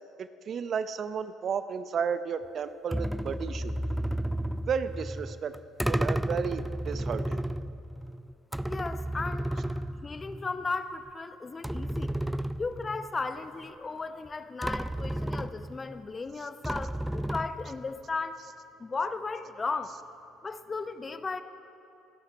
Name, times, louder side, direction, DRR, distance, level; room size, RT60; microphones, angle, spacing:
voice 1, 0.2-3.7 4.7-5.5 5.8-7.4, right 6 dB, 50° right, 13 dB, 0.6 m, -33 dB
sound 1, 2.9-10.7 11.1-11.2 11.6-13.3 14.3-14.4 14.6-16.0 16.6-17.9, right 1 dB, 5° right, 0.4 m, -33 dB
voice 2, 8.7-9.5 10.0-12.1 12.6-18.4 18.8-20.0 20.4-21.4, left 4 dB, 30° left, 11 dB, 0.9 m, -35 dB
25.5 x 11.5 x 4.7 m, 2.7 s
hypercardioid pair, 60°, 0 cm